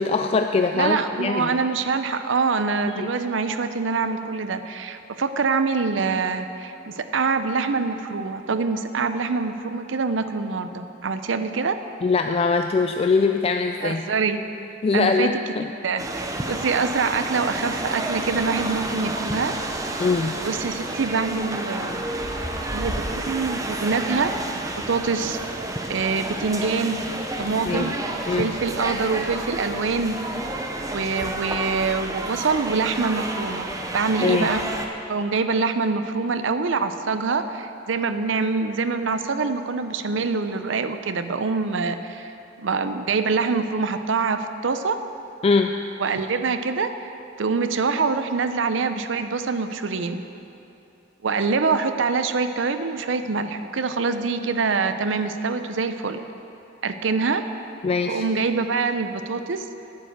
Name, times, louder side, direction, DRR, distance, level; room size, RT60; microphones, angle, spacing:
voice 1, 0.0-1.5 3.0-3.1 12.0-14.0 14.8-15.7 20.0-20.4 27.7-27.9 28.3-28.5 34.2-34.5 45.4-45.7 57.8-58.2, left 4 dB, 30° left, 5 dB, 0.3 m, -22 dB
voice 2, 0.7-11.8 13.8-14.4 14.9-15.3 15.8-19.5 20.4-22.1 22.7-22.9 23.3-24.6 24.9-25.4 25.9-27.0 27.4-28.0 28.4-30.2 30.9-34.6 35.1-42.3 42.6-45.0 46.0-47.1 47.4-50.2 51.2-56.2 56.8-57.4 58.1-59.7, right 4 dB, 85° right, 9 dB, 0.6 m, -25 dB
sound 1, 16.0-34.9, right 1 dB, 20° right, 0.7 m, -30 dB
10.0 x 9.6 x 6.5 m, 2.8 s
head